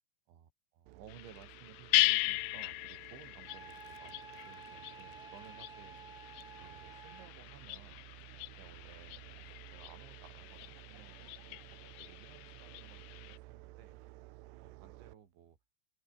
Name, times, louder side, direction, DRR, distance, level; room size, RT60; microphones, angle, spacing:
voice 1, 0.3-6.0 6.6-8.1 8.6-14.0 14.6-15.6, right 8 dB, 65° right, 5.3 m, -58 dB
sound 1, 0.9-15.1, right 18 dB, 80° right, 2.5 m, -55 dB
sound 2, 1.1-13.4, left 24 dB, 85° left, 2.8 m, -38 dB
Wind instrument woodwind instrument, 3.5-7.3, right 4 dB, 25° right, 2.3 m, -52 dB
open air
omnidirectional pair, 5.8 m